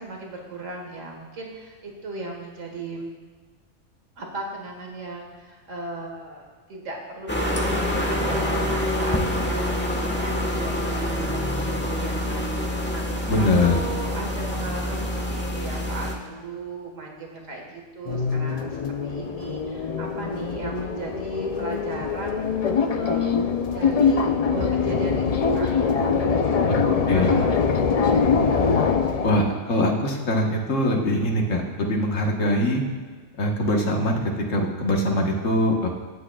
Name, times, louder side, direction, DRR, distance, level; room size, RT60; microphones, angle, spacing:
voice 1, 0.0-3.1 4.2-18.8 19.0-25.7 26.0-27.5 27.8-28.0, right 2 dB, 90° right, 0 dB, 1.9 m, -36 dB
sound 1, 7.3-16.1, left 1 dB, 10° left, 1.1 m, -26 dB
voice 2, 13.3-13.8 27.1-27.4 29.2-32.8 33.4-34.2 34.5-35.9, left 1 dB, 80° left, 0 dB, 1.7 m, -22 dB
sound 2, 18.1-29.6, left 5 dB, 50° left, 0.4 m, -23 dB
19.0 x 8.6 x 2.3 m, 1.5 s
omnidirectional pair, 1.3 m